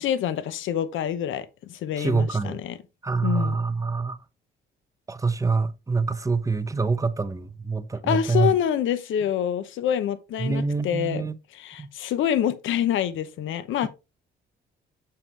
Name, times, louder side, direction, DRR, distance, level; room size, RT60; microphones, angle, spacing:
voice 1, 0.0-2.8 3.2-3.6 8.0-11.2 11.5-13.9, left 10 dB, 80° left, 0.9 m, -26 dB
voice 2, 2.0-2.6 3.0-4.2 5.1-8.5 10.4-11.4 11.8-11.9 13.8-13.9, right 4 dB, 15° right, 0.8 m, -25 dB
6.9 x 5.7 x 3.3 m
cardioid pair, 90°, 20 cm